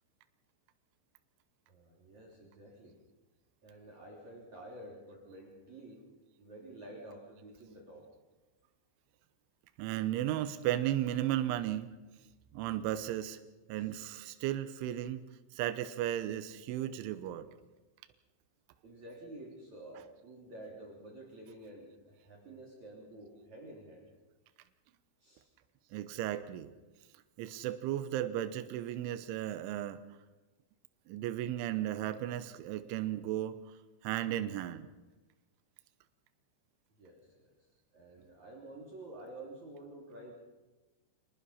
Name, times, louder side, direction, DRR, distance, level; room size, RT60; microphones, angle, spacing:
voice 1, 1.7-3.0 3.6-6.1 6.4-8.1 13.7-13.9 18.8-24.1 25.2-25.5 37.0-37.5 37.9-40.3, right 1 dB, 40° right, -2 dB, 4.2 m, -50 dB
voice 2, 9.8-11.9 12.5-13.4 13.7-15.2 15.5-17.5 20.0-20.1 25.9-26.7 27.4-30.0 31.1-33.6 34.0-34.9, right 12 dB, 80° right, 10 dB, 3.3 m, -35 dB
25.5 x 19.5 x 5.7 m, 1.1 s
omnidirectional pair, 5.7 m